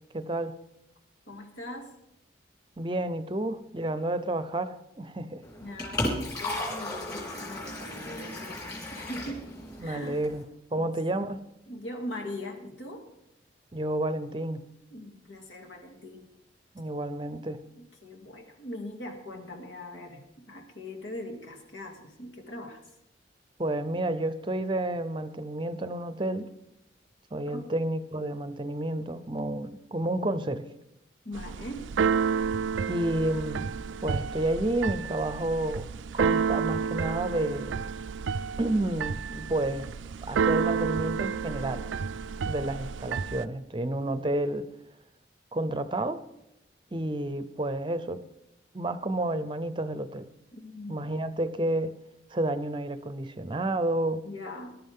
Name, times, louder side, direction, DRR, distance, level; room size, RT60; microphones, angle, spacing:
voice 1, 0.1-0.6 2.8-5.4 9.8-10.4 10.7-11.4 13.7-14.6 16.7-17.6 23.6-26.5 27.3-30.7 32.9-33.7 34.0-35.9 36.1-37.8 38.6-39.9 40.2-41.8 42.4-44.7 45.5-46.2 46.9-48.2 48.7-50.3 50.9-51.9 52.3-54.2, right 1 dB, 25° right, 12 dB, 0.6 m, -30 dB
voice 2, 1.3-1.9 5.6-9.5 9.8-10.2 10.7-11.4 11.7-13.1 14.9-16.3 17.7-22.9 27.5-27.7 31.2-31.9 50.5-51.0 54.2-54.8, left 1 dB, 80° left, 2 dB, 2.6 m, -41 dB
Liquid, 5.4-10.4, left 1 dB, 20° left, 3.3 m, -35 dB
Keyboard (musical), 31.3-43.4, right 6 dB, 80° right, 0.4 m, -30 dB
20.0 x 11.5 x 3.7 m, 0.85 s
head